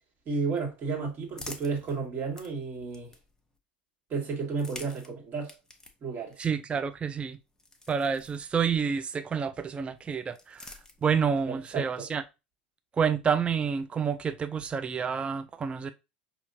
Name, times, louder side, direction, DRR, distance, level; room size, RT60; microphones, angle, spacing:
voice 1, 0.3-3.1 4.1-5.6 6.0-6.4 11.5-12.1, right 4 dB, 35° right, 1.8 m, -32 dB
sound 1, 0.7-3.6 4.4-9.0 10.0-11.4, left 2 dB, 10° left, 0.9 m, -50 dB
voice 2, 6.4-7.4 7.9-10.7 11.0-12.2 13.0-15.9, right 6 dB, 20° right, 0.4 m, -29 dB
5.5 x 2.8 x 2.7 m
figure-of-eight pair, 75°, 6 cm